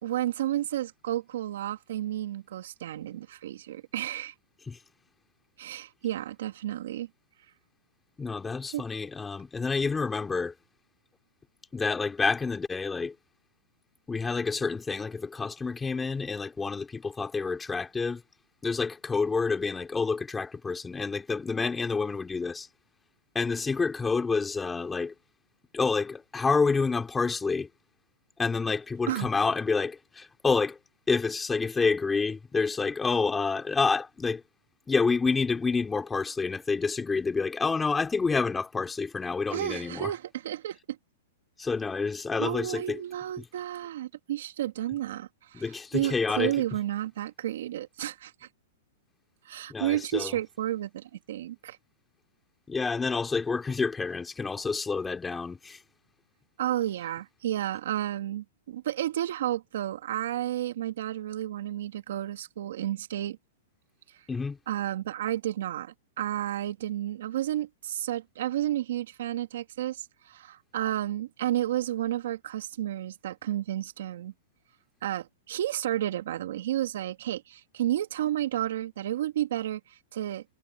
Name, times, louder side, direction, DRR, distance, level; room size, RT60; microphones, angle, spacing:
voice 1, 0.0-4.3 5.6-7.1 8.7-8.8 29.1-29.3 39.5-40.8 42.4-48.5 49.5-51.8 56.6-63.4 64.7-74.3 75.0-80.4, right 12 dB, 70° right, 2.5 m, -32 dB
voice 2, 8.2-10.5 11.7-13.1 14.1-18.2 18.6-22.7 23.3-25.1 25.7-27.7 28.4-30.8 31.1-34.4 34.9-40.1 41.6-43.0 45.5-46.5 49.7-50.3 52.7-55.8 64.3-64.6, left 4 dB, 10° left, 3.3 m, -28 dB
hypercardioid pair, 145°, 0 cm